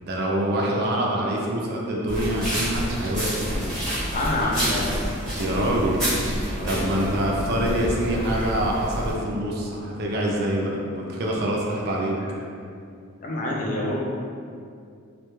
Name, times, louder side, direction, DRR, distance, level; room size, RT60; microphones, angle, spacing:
voice 1, 0.0-3.6 5.4-6.0 6.6-12.2, right 1 dB, 45° right, -2 dB, 0.3 m, -25 dB
sound 1, 2.1-9.1, equal, ahead, 0.8 m, -28 dB
voice 2, 4.1-5.0 5.4-6.1 6.6-7.4 12.2-12.3 13.2-14.0, left 1 dB, 40° left, -4 dB, 0.4 m, -28 dB
2.2 x 2.1 x 3.0 m, 2.4 s
head